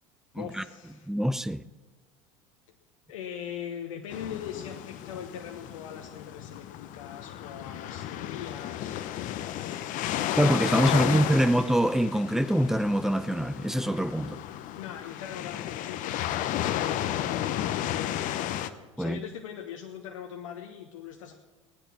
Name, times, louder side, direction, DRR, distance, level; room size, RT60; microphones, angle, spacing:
voice 1, 0.3-1.1 3.1-10.2 10.7-11.6 14.7-17.5 19.0-21.3, left 9 dB, 75° left, 1.2 m, -41 dB
voice 2, 1.1-1.6 10.4-14.4 19.0-19.2, equal, ahead, 0.6 m, -24 dB
sound 1, 4.1-18.7, left 12 dB, 50° left, 1.0 m, -33 dB
17.5 x 10.0 x 6.1 m
hypercardioid pair, 80°, 17 cm